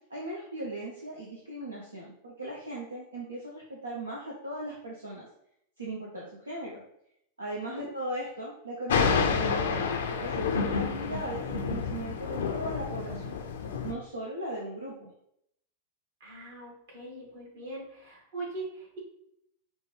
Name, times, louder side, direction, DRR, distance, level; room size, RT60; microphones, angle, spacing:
voice 1, 0.1-5.2 5.8-6.8 7.4-13.4 13.8-15.1, right 1 dB, 80° right, -3 dB, 0.7 m, -38 dB
Thunder, 8.9-13.9, left 5 dB, 60° left, 0.5 m, -29 dB
voice 2, 16.2-19.0, right 2 dB, 60° right, -3 dB, 1.6 m, -41 dB
5.2 x 2.6 x 3.1 m, 0.74 s
figure-of-eight pair, 90°, 0 cm